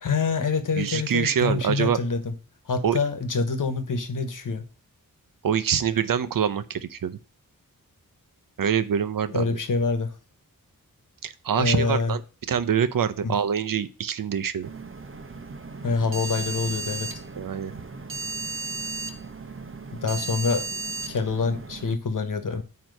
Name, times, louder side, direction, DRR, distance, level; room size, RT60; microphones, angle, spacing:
voice 1, 0.0-2.3 2.7-4.6 9.3-10.1 11.5-12.2 13.2-13.4 15.8-17.1 19.9-20.6 21.1-22.6, left 4 dB, 65° left, 8 dB, 1.3 m, -26 dB
voice 2, 0.7-2.0 2.8-3.0 5.4-7.2 8.6-9.6 11.2-12.2 12.5-14.7 17.4-17.7, right 8 dB, 75° right, 12 dB, 0.7 m, -25 dB
sound 1, 14.6-21.9, right 3 dB, 40° right, 1.0 m, -35 dB
9.0 x 3.1 x 6.4 m, 0.36 s
wide cardioid pair, 80°, 34 cm